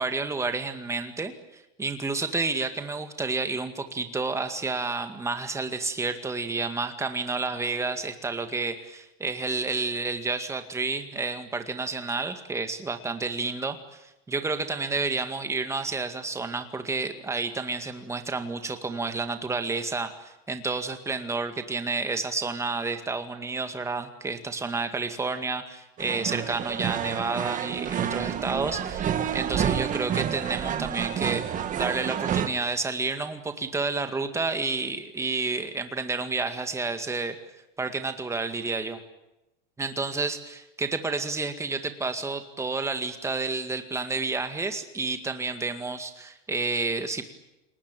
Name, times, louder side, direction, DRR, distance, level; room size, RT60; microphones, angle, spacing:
voice 1, 0.0-37.4 37.8-39.0 39.8-47.2, right 3 dB, 10° right, 7 dB, 2.0 m, -30 dB
sound 1, 26.0-32.5, right 9 dB, 25° right, 1.8 m, -29 dB
29.0 x 19.5 x 9.2 m, 0.94 s
supercardioid pair, 150°, 30 cm